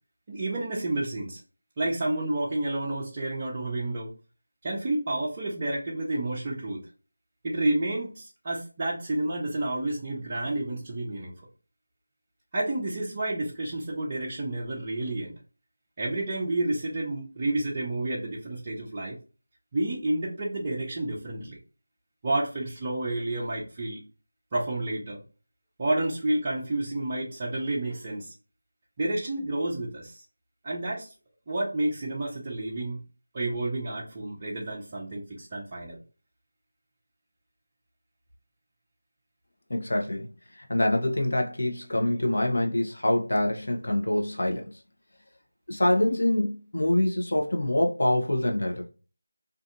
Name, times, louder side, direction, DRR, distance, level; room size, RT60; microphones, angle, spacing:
voice 1, 0.3-1.4 1.8-4.1 4.6-6.9 7.4-11.5 12.5-15.4 16.0-19.2 19.7-21.6 22.2-24.0 24.5-25.2 25.8-28.3 29.0-30.2 30.6-31.1 31.5-33.0 33.3-36.0, right 2 dB, 20° right, 0.5 m, -30 dB
voice 2, 39.7-40.3 40.6-44.7 45.7-48.9, left 1 dB, 65° left, 0.7 m, -25 dB
2.5 x 2.5 x 2.4 m
figure-of-eight pair, 170°, 0 cm